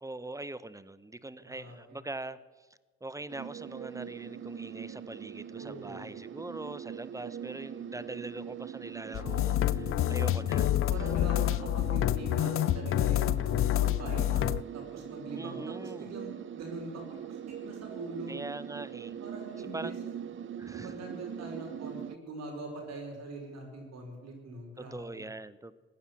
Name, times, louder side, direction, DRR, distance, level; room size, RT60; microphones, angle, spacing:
voice 1, 0.0-2.4 3.0-10.7 15.3-16.1 18.3-19.2 19.7-19.9 20.6-20.9 24.8-25.8, right 2 dB, 10° right, 16 dB, 0.8 m, -42 dB
voice 2, 1.4-2.0 5.6-6.0 10.9-13.5 13.8-14.5 14.7-18.3 19.2-20.0 20.7-25.2, right 2 dB, 60° right, 2 dB, 5.0 m, -43 dB
sound 1, 3.3-22.2, right 9 dB, 45° right, 0.6 m, -42 dB
sound 2, 9.1-14.6, left 14 dB, 50° left, 0.4 m, -28 dB
16.0 x 9.6 x 7.2 m, 1.4 s
supercardioid pair, 60°, 29 cm